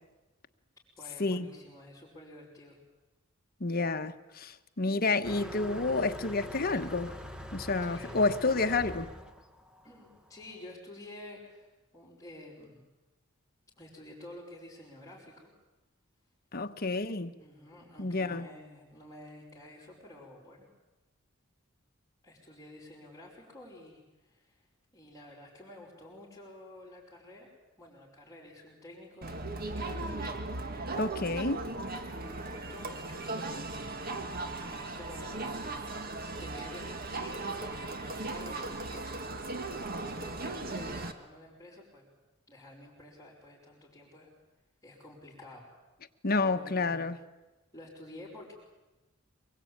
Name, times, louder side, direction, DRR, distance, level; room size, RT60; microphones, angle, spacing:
voice 1, 1.0-2.8 7.8-8.6 9.8-12.9 13.8-15.5 17.4-20.7 22.2-24.7 24.9-27.5 27.8-30.2 32.0-33.8 34.4-35.6 36.2-42.1 42.5-44.3 44.8-45.7 46.4-47.1 47.7-48.5, left 1 dB, 15° left, 5.5 m, -50 dB
voice 2, 3.6-7.1 7.5-9.1 16.5-17.3 18.0-18.4 30.9-31.7 46.2-47.1, left 3 dB, 45° left, 1.2 m, -29 dB
Motor vehicle (road), 5.2-10.4, left 1 dB, 5° right, 1.4 m, -43 dB
Crowd, 29.2-41.1, right 2 dB, 45° right, 1.7 m, -37 dB
25.0 x 22.5 x 8.8 m
head